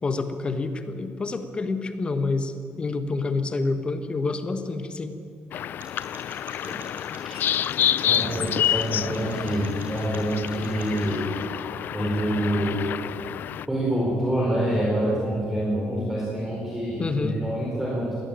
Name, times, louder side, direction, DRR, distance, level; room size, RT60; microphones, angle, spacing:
voice 1, 0.0-5.1 17.0-17.4, left 3 dB, 25° left, 9 dB, 1.2 m, -28 dB
sound 1, 5.5-13.7, left 10 dB, 55° left, 0.4 m, -28 dB
sound 2, 5.8-11.1, right 4 dB, 60° right, 5.8 m, -49 dB
voice 2, 8.1-11.4 11.9-12.8 13.7-18.2, right 1 dB, 5° right, -4 dB, 4.4 m, -26 dB
20.5 x 17.0 x 9.0 m, 2.4 s
cardioid pair, 135°, 4 cm